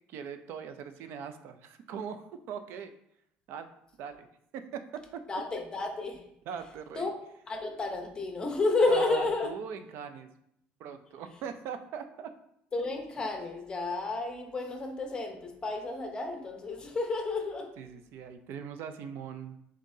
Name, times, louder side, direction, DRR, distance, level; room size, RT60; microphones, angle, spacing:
voice 1, 0.1-2.9 3.5-3.7 4.0-4.3 4.5-4.8 6.5-7.1 8.9-10.3 10.8-12.3 17.8-19.6, right 7 dB, 65° right, 9 dB, 0.4 m, -40 dB
voice 2, 5.3-6.2 7.0-7.2 7.5-9.5 12.7-17.7, left 3 dB, 20° left, 3 dB, 0.8 m, -31 dB
5.3 x 3.7 x 2.7 m, 0.75 s
cardioid pair, 145°, 4 cm